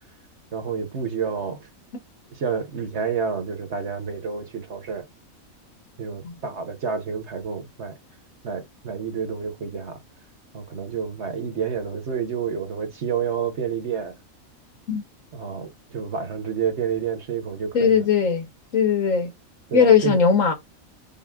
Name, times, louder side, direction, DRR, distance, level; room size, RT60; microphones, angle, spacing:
voice 1, 0.5-1.7 2.3-5.1 6.0-7.9 8.4-10.0 10.5-14.1 15.3-18.0 19.7-20.2, right 6 dB, 55° right, 1.3 m, -29 dB
voice 2, 17.7-18.5 18.7-19.3 19.7-20.5, left 6 dB, 70° left, 1.5 m, -18 dB
5.6 x 2.3 x 3.6 m
omnidirectional pair, 1.4 m